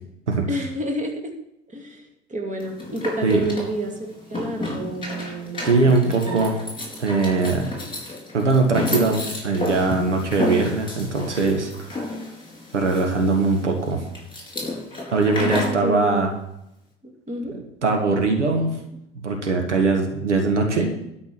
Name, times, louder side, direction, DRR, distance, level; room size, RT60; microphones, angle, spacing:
voice 1, 0.5-1.3 1.7-6.5 15.4-16.3 17.0-17.6, right 1 dB, 20° right, 2 dB, 2.4 m, -30 dB
sound 1, 2.6-15.8, left 2 dB, 15° left, 4.3 m, -32 dB
voice 2, 5.6-6.6 7.0-7.7 8.3-11.7 12.7-14.0 15.1-16.3 17.8-18.8 19.2-20.9, right 3 dB, 90° right, 3 dB, 1.7 m, -21 dB
12.0 x 5.3 x 8.2 m, 0.81 s
hypercardioid pair, 75°, 34 cm